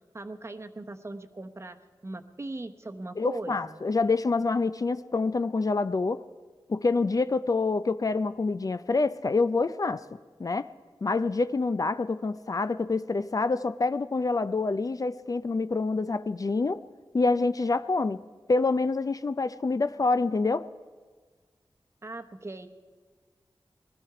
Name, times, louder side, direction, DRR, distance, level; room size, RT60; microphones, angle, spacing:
voice 1, 0.1-1.8 2.0-3.8 22.0-22.7, right 2 dB, 30° right, 7 dB, 0.9 m, -39 dB
voice 2, 3.2-6.2 6.7-10.0 10.4-10.7 11.0-16.8 17.1-18.2 18.5-20.7, left 3 dB, 45° left, 13 dB, 0.4 m, -26 dB
20.5 x 13.0 x 4.9 m, 1.5 s
wide cardioid pair, 80°, 9 cm